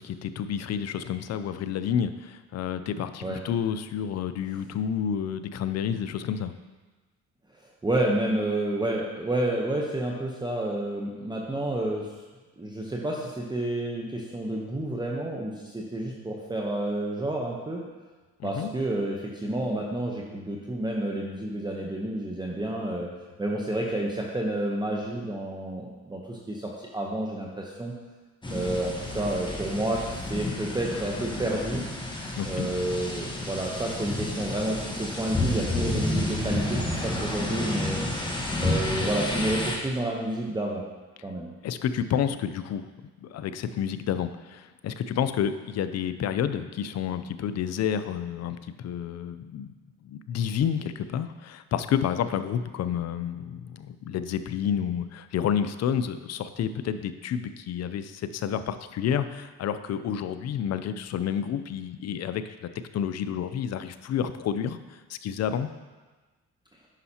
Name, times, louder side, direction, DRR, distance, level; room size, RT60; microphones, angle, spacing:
voice 1, 0.0-6.5 18.4-18.7 32.4-32.7 41.6-42.8 43.2-49.7 50.0-64.8 65.1-65.7, left 8 dB, 60° left, 11 dB, 0.5 m, -30 dB
voice 2, 7.8-12.1 12.6-17.8 18.4-23.1 23.4-27.9 28.5-31.8 32.4-38.0 38.6-40.8 41.2-41.5, right 1 dB, 15° right, -2 dB, 0.9 m, -30 dB
sound 1, 28.4-39.8, left 1 dB, 15° left, 1.2 m, -30 dB
9.8 x 5.5 x 2.8 m, 1.3 s
cardioid pair, 90°, 30 cm